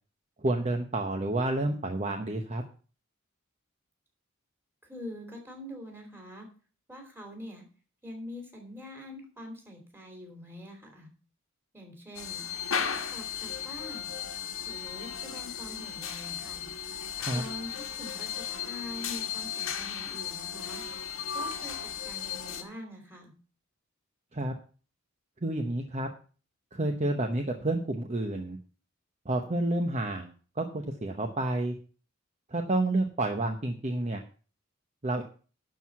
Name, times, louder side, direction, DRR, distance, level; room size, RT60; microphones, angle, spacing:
voice 1, 0.4-2.6 17.2-17.4 24.3-24.5 25.4-26.1 26.7-28.6 29.2-31.8 32.5-34.2 35.0-35.2, right 2 dB, 35° right, 4 dB, 0.9 m, -30 dB
voice 2, 4.8-6.5 6.9-7.6 8.0-11.1 11.7-12.4 13.1-14.1 14.7-16.7 17.3-17.7 18.0-20.8 21.3-23.3, left 1 dB, 10° right, 2 dB, 2.9 m, -44 dB
sound 1, 12.1-22.6, left 8 dB, 75° left, 1.4 m, -35 dB
11.5 x 4.7 x 7.2 m, 0.39 s
head